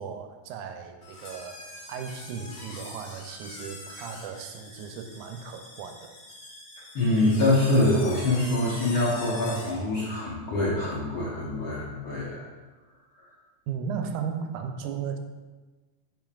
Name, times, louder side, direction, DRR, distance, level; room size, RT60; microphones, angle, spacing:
voice 1, 0.0-6.1 13.7-15.2, right 6 dB, 85° right, 6 dB, 2.0 m, -36 dB
sound 1, 1.0-9.8, left 2 dB, 85° left, 2.9 m, -44 dB
voice 2, 6.9-12.4, left 1 dB, 60° left, -6 dB, 1.4 m, -25 dB
9.0 x 5.3 x 2.4 m, 1.2 s
omnidirectional pair, 3.5 m